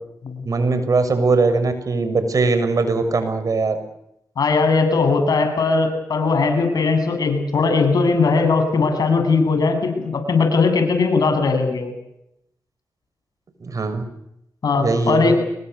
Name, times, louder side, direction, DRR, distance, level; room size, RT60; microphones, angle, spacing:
voice 1, 0.4-3.8 13.6-14.0 14.8-15.3, right 3 dB, 60° right, 9 dB, 6.6 m, -20 dB
voice 2, 4.4-11.9 14.6-15.4, left 4 dB, 70° left, 6 dB, 8.0 m, -19 dB
26.0 x 22.5 x 8.4 m, 0.80 s
cardioid pair, 55°, 7 cm